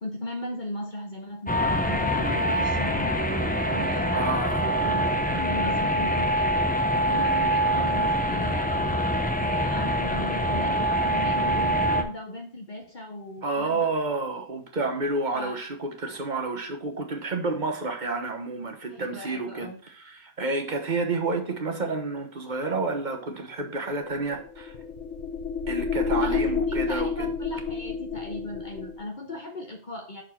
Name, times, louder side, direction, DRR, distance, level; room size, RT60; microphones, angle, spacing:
voice 1, 0.0-3.2 3.7-6.6 7.0-9.1 9.4-13.9 15.3-15.6 18.9-19.8 26.1-30.2, left 1 dB, 45° left, 2 dB, 1.1 m, -38 dB
sound 1, 1.5-12.0, equal, 10° left, 0.6 m, -25 dB
voice 2, 4.1-4.6 13.4-24.7 25.7-27.3, right 3 dB, 40° right, 4 dB, 1.4 m, -30 dB
sound 2, 24.1-29.0, left 5 dB, 85° left, 1.3 m, -29 dB
6.4 x 4.5 x 5.8 m, 0.43 s
omnidirectional pair, 1.2 m